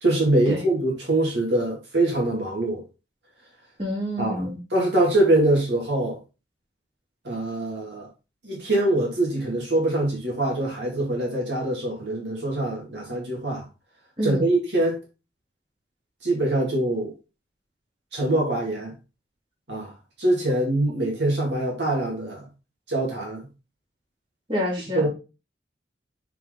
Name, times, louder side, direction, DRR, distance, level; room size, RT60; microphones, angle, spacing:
voice 1, 0.0-2.8 4.2-6.2 7.2-8.1 8.4-13.6 14.2-15.0 16.2-17.1 18.1-18.9 19.7-19.9 20.2-22.5 22.9-23.5 24.9-25.1, right 1 dB, 80° right, 2.5 m, -24 dB
voice 2, 3.8-4.6 14.2-14.5 24.5-25.1, equal, 30° right, 3.5 m, -28 dB
5.9 x 4.9 x 3.8 m
head